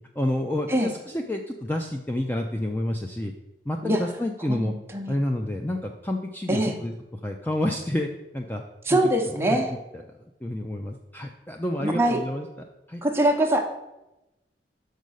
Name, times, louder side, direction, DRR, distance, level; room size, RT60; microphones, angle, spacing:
voice 1, 0.2-3.3 3.7-4.7 5.1-6.9 7.2-9.0 9.5-9.6 10.4-12.5 12.9-13.0, left 1 dB, 10° left, 3 dB, 0.4 m, -29 dB
voice 2, 4.5-5.2 6.5-6.8 8.9-9.7 11.8-12.2 13.0-13.6, right 1 dB, 15° right, 2 dB, 0.9 m, -23 dB
6.5 x 5.3 x 6.3 m, 0.96 s
head